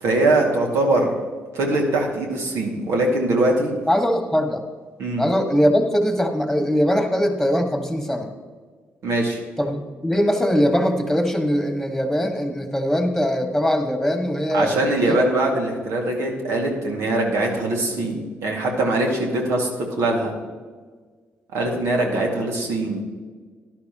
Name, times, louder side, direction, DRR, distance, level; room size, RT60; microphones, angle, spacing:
voice 1, 0.0-1.1 1.5-3.7 5.0-5.2 9.0-9.4 14.5-20.3 21.5-23.0, right 2 dB, 80° right, 0 dB, 2.3 m, -22 dB
voice 2, 3.9-4.6 5.2-8.3 9.6-14.8 15.1-15.2, equal, ahead, 4 dB, 1.9 m, -21 dB
13.0 x 11.0 x 3.1 m, 1.5 s
supercardioid pair, 65°, 5 cm